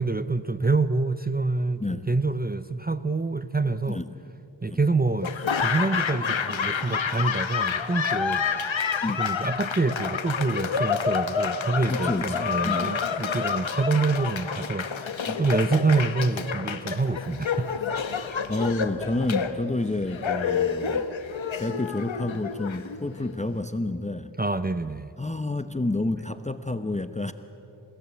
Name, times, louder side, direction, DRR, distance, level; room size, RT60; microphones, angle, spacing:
voice 1, 0.0-4.0 4.6-8.5 9.2-15.1 15.4-17.7 24.4-25.1, right 3 dB, 20° right, 13 dB, 0.7 m, -26 dB
Laughter / Applause, 5.2-23.3, left 6 dB, 90° left, 1.2 m, -28 dB
voice 2, 11.9-12.9 15.3-15.5 18.5-21.1 21.6-24.3 25.2-27.3, left 2 dB, 15° left, 10 dB, 0.9 m, -29 dB
28.5 x 17.0 x 8.3 m, 3.0 s
cardioid pair, 45°, 45 cm